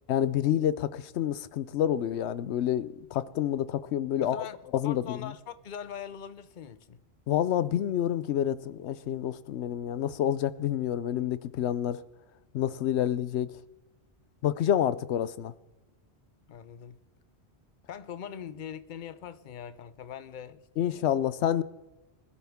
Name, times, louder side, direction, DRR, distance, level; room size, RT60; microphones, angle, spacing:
voice 1, 0.1-4.4 4.7-5.3 7.3-12.0 12.5-13.5 14.4-15.5 20.8-21.6, left 10 dB, 90° left, 0.9 m, -28 dB
voice 2, 4.2-7.0 16.5-17.0 17.9-21.0, left 8 dB, 55° left, 0.7 m, -42 dB
20.5 x 11.5 x 3.6 m
omnidirectional pair, 1.1 m